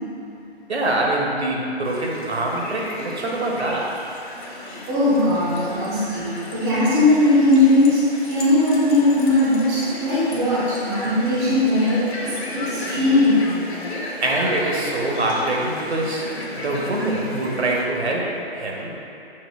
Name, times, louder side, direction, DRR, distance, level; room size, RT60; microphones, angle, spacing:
voice 1, 0.7-4.0 14.2-18.9, right 2 dB, 90° right, -1 dB, 1.2 m, -24 dB
sound 1, 1.8-17.8, left 1 dB, 80° left, 1.5 m, -34 dB
voice 2, 4.9-13.4, left 1 dB, 10° right, -9 dB, 0.7 m, -19 dB
7.1 x 5.5 x 2.4 m, 2.9 s
hypercardioid pair, 150°, 32 cm